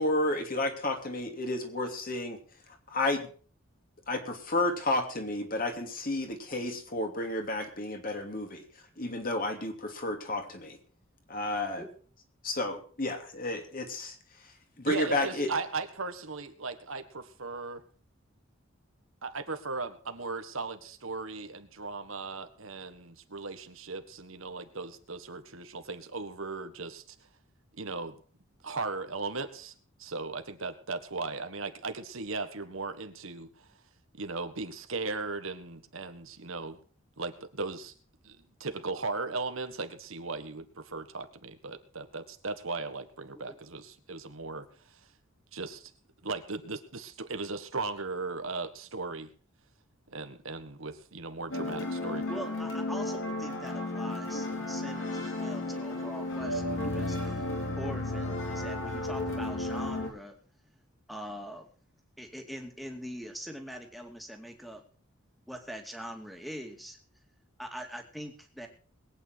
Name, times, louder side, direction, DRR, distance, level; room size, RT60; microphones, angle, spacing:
voice 1, 0.0-2.4 2.9-3.3 4.1-8.6 9.0-10.8 11.3-11.8 12.4-14.1 14.8-15.5, left 2 dB, 45° left, 4 dB, 2.9 m, -31 dB
voice 2, 14.9-17.8 19.2-27.1 27.8-28.2 28.6-29.7 30.0-33.7 34.2-36.8 37.2-37.9 38.2-45.0 45.5-45.9 46.2-49.3 50.1-52.3, right 3 dB, 80° right, 9 dB, 1.6 m, -37 dB
sound 1, 51.5-60.1, left 2 dB, 70° left, 4.1 m, -33 dB
voice 3, 52.3-60.4 61.1-61.7 62.2-64.8 65.5-67.0 67.6-68.7, equal, ahead, 4 dB, 2.4 m, -43 dB
21.5 x 9.2 x 4.5 m, 0.42 s
head